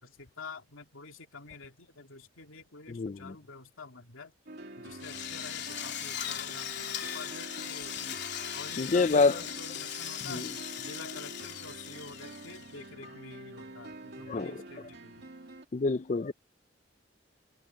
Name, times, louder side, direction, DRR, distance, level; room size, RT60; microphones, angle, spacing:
voice 1, 0.0-4.3 4.8-8.2 8.5-10.5 10.8-15.3, left 4 dB, 85° left, 2.5 m, -48 dB
voice 2, 2.9-3.3 8.8-9.4 10.3-10.5 14.3-14.6 15.7-16.3, left 4 dB, 35° left, 0.4 m, -27 dB
sound 1, 4.5-15.6, right 2 dB, 55° right, 2.7 m, -47 dB
Drill, 5.0-12.9, left 10 dB, 55° left, 3.6 m, -39 dB
head